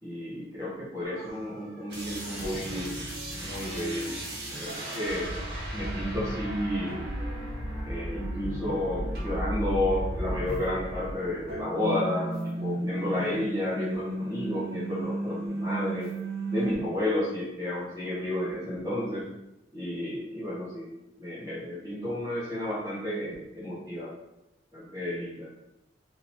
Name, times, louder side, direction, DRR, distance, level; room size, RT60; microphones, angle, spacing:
voice 1, 0.0-3.0 3.3-4.1 4.5-5.3 5.7-7.1 7.8-16.1 16.5-19.3 19.7-20.9 21.2-24.1 24.7-25.5, left 1 dB, 20° right, -9 dB, 1.1 m, -32 dB
sound 1, 1.0-13.6, equal, 60° right, 0.8 m, -42 dB
sound 2, 1.9-11.4 11.7-16.7, right 1 dB, 85° right, 1.1 m, -34 dB
3.8 x 2.9 x 2.7 m, 0.90 s
head